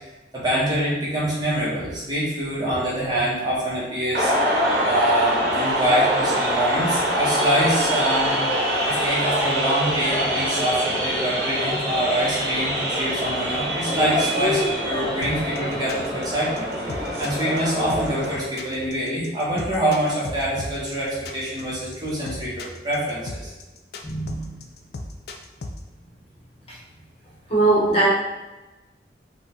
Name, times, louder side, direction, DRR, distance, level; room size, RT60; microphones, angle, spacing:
voice 1, 0.3-4.3 4.8-8.3 8.8-23.5, right 1 dB, 25° right, -7 dB, 1.4 m, -25 dB
sound 1, 4.1-18.3, equal, 60° right, 1.0 m, -24 dB
sound 2, 15.2-25.8, left 2 dB, 60° left, 0.5 m, -35 dB
voice 2, 24.0-24.6 26.7-26.8 27.5-28.1, right 2 dB, 35° left, -6 dB, 1.2 m, -21 dB
5.0 x 2.5 x 3.9 m, 1.1 s
head